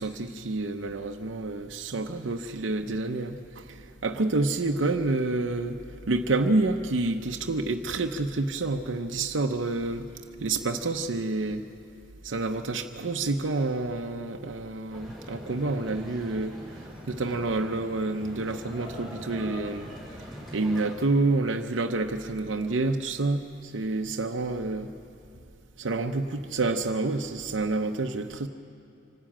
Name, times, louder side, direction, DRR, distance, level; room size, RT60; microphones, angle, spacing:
voice 1, 0.0-10.1 10.4-11.6 12.2-19.9 20.5-24.9 25.8-28.5, right 2 dB, 80° right, 4 dB, 0.7 m, -28 dB
sound 1, 14.9-20.9, equal, ahead, 5.2 m, -43 dB
25.0 x 12.5 x 8.8 m, 2.5 s
head